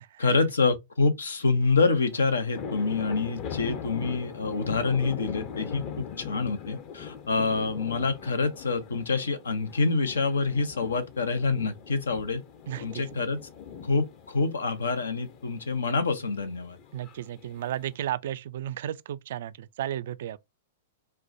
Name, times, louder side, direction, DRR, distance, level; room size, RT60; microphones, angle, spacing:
voice 1, 0.2-12.4 12.8-13.4 13.8-16.8, left 4 dB, 80° left, 0.7 m, -27 dB
sound 1, 1.6-17.9, left 7 dB, 45° left, 0.7 m, -41 dB
voice 2, 12.7-13.0 16.9-20.4, right 11 dB, 65° right, 0.3 m, -34 dB
4.3 x 2.2 x 2.6 m
hypercardioid pair, 110°, 0 cm